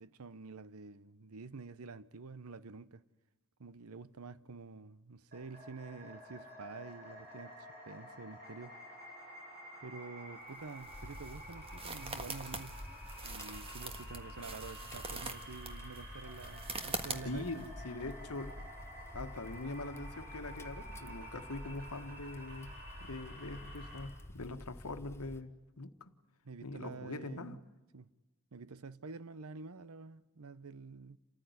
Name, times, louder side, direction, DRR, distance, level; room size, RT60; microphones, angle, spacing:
voice 1, 0.0-3.0 3.6-7.6 7.8-8.8 9.8-12.8 13.2-17.7 26.4-27.6 27.9-28.1 28.5-31.2, right 4 dB, 75° right, 0.8 m, -48 dB
sound 1, 5.3-24.0, equal, 45° right, 7.7 m, -51 dB
sound 2, 10.5-17.7, right 4 dB, 25° right, 1.6 m, -44 dB
sound 3, 10.9-25.4, left 1 dB, 10° left, 1.0 m, -50 dB
voice 2, 17.2-18.6 19.1-22.7 23.0-26.1 26.6-27.6, left 2 dB, 80° left, 1.4 m, -43 dB
28.5 x 14.5 x 9.5 m
head